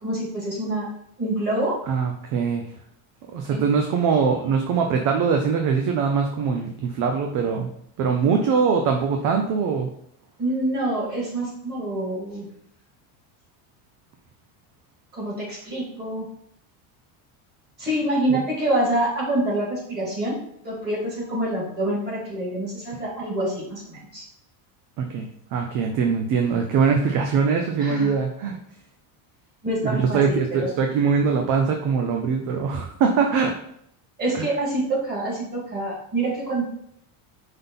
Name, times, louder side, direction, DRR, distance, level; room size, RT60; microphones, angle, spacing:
voice 1, 0.0-0.9 1.2-1.8 3.5-3.6 10.4-12.5 15.1-16.2 17.8-20.4 20.6-24.2 27.8-28.1 29.6-30.7 34.2-36.6, right 1 dB, 20° right, -4 dB, 2.7 m, -26 dB
voice 2, 1.9-2.7 3.3-7.7 8.0-9.9 18.3-18.4 25.0-28.6 29.8-33.6 34.3-34.5, right 5 dB, 45° right, 3 dB, 0.7 m, -22 dB
5.4 x 3.9 x 5.6 m, 0.71 s
cardioid pair, 170°, 46 cm